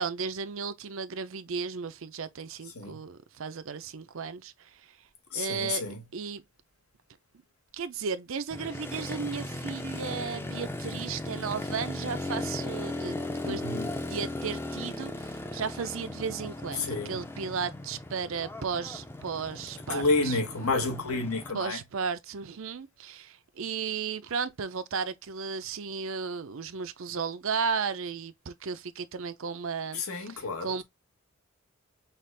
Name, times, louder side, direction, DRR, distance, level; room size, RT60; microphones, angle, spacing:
voice 1, 0.0-4.7 5.3-5.8 6.1-6.4 7.7-13.6 14.0-20.4 21.5-30.8, right 5 dB, 65° right, 0.5 m, -34 dB
voice 2, 5.3-5.9 13.4-13.9 16.8-17.2 19.9-21.8 29.9-30.7, left 3 dB, 85° left, 1.5 m, -30 dB
Motorcycle, 8.5-21.5, left 1 dB, 10° left, 0.5 m, -37 dB
5.8 x 2.4 x 3.3 m
head